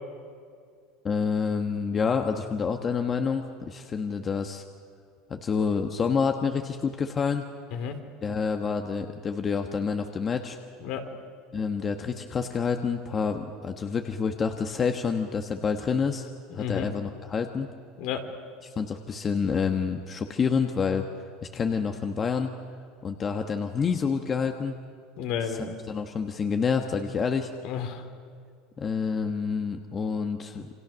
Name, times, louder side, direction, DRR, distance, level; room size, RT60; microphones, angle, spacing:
voice 1, 1.0-4.6 5.3-7.5 8.2-10.6 11.5-16.3 16.5-17.7 18.8-21.0 21.5-22.5 23.0-24.8 25.4-27.5 28.8-30.7, left 5 dB, 30° left, 5 dB, 1.4 m, -28 dB
voice 2, 10.8-11.1 16.6-16.9 18.0-18.3 25.2-25.8 27.6-28.0, left 7 dB, 65° left, 5 dB, 2.9 m, -32 dB
28.5 x 24.5 x 6.4 m, 2.2 s
supercardioid pair, 110°, 0 cm